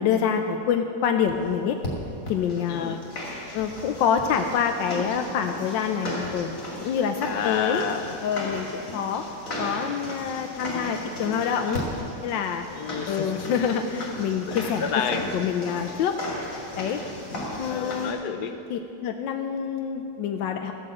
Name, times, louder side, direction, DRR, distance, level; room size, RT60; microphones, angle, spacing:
voice 1, 0.0-1.8 2.3-3.0 3.5-6.5 6.8-7.8 8.2-9.2 9.6-11.9 12.2-12.6 13.1-14.8 15.1-16.2 16.8-17.0 17.6-18.1 18.7-20.7, left 7 dB, 80° left, 5 dB, 1.3 m, -26 dB
sound 1, 1.3-1.4 1.8-1.9 2.3-18.1, left 1 dB, 45° left, 2.9 m, -36 dB
voice 2, 2.7-3.0 7.2-8.2 12.7-13.5 14.5-15.2 17.6-18.6, left 7 dB, 65° left, 7 dB, 1.3 m, -30 dB
14.0 x 7.8 x 7.7 m, 2.7 s
omnidirectional pair, 2.0 m